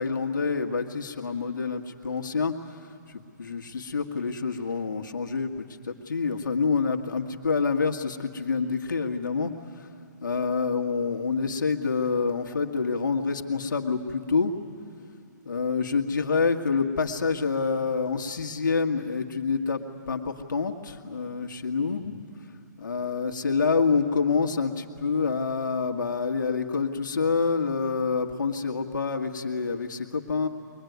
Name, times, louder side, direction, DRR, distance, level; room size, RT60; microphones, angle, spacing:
voice 1, 0.0-9.9 10.2-14.5 15.4-22.2 22.8-30.5, left 4 dB, 80° left, 3 dB, 1.7 m, -27 dB
23.5 x 21.0 x 9.4 m, 2.3 s
hypercardioid pair, 150°, 10 cm